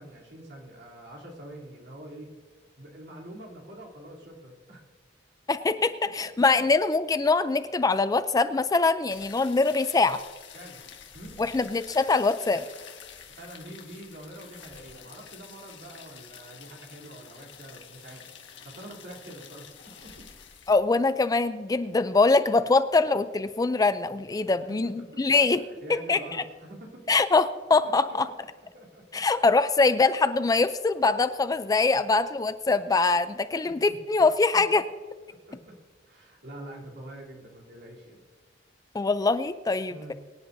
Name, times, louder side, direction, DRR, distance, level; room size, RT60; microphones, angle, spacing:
voice 1, 0.0-2.3 2.8-4.8 6.0-6.7 10.5-10.8 11.1-11.4 13.3-18.3 18.6-20.3 24.5-25.2 25.5-27.1 27.8-28.5 28.7-29.2 33.5-34.0 34.5-34.8 35.3-35.8 36.1-38.2 39.9-40.1, right 1 dB, 65° right, -2 dB, 3.2 m, -45 dB
voice 2, 5.5-10.2 11.4-12.6 20.7-25.6 26.1-26.2 27.1-28.3 29.1-34.8 38.9-40.1, left 3 dB, 20° left, 12 dB, 0.4 m, -23 dB
sound 1, 9.1-20.7, left 7 dB, 75° left, 1.6 m, -48 dB
23.5 x 10.5 x 2.7 m, 1.5 s
head